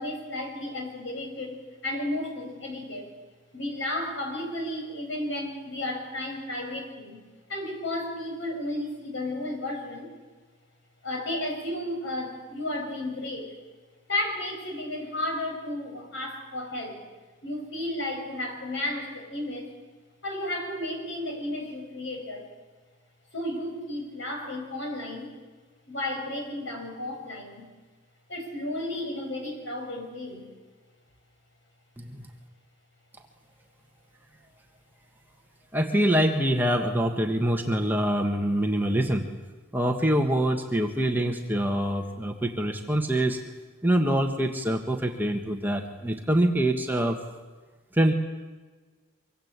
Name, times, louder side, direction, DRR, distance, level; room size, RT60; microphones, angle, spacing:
voice 1, 0.0-3.1 3.5-7.2 7.5-10.1 11.0-13.6 14.1-17.0 17.4-19.7 20.2-22.5 23.3-25.3 25.9-27.7 28.3-30.5, left 1 dB, 60° left, 2 dB, 6.9 m, -33 dB
voice 2, 32.0-32.3 35.7-39.3 39.7-43.4 43.8-47.2 47.9-48.1, right 1 dB, 10° right, 3 dB, 1.5 m, -25 dB
25.0 x 23.5 x 8.3 m, 1.4 s
head